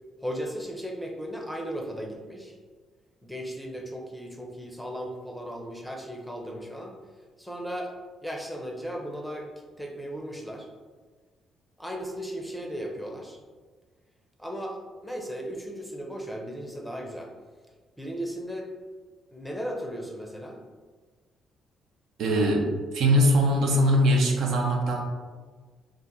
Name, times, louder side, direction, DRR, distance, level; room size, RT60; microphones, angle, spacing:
voice 1, 0.2-2.6 3.2-7.0 7.4-7.9 8.2-9.5 9.8-10.7 11.8-13.4 14.4-17.3 18.0-18.7 19.3-20.6, equal, ahead, 1 dB, 0.5 m, -36 dB
voice 2, 22.2-22.7 22.9-25.0, equal, 75° right, 1 dB, 0.6 m, -21 dB
2.8 x 2.4 x 3.7 m, 1.4 s
cardioid pair, 90°, 0 cm